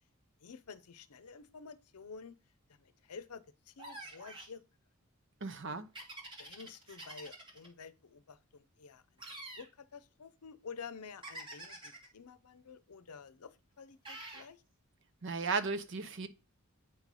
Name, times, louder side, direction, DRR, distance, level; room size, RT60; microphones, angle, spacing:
voice 1, 0.4-2.4 2.7-4.6 6.4-9.0 9.6-14.6, left 5 dB, 90° left, 0.6 m, -50 dB
sound 1, 3.8-4.6 6.0-7.7 9.2-9.7 11.2-12.1 14.1-14.5, right 2 dB, 20° right, 1.5 m, -47 dB
voice 2, 5.4-5.9 15.2-16.3, right 4 dB, 55° right, 0.7 m, -35 dB
8.8 x 3.3 x 5.3 m
head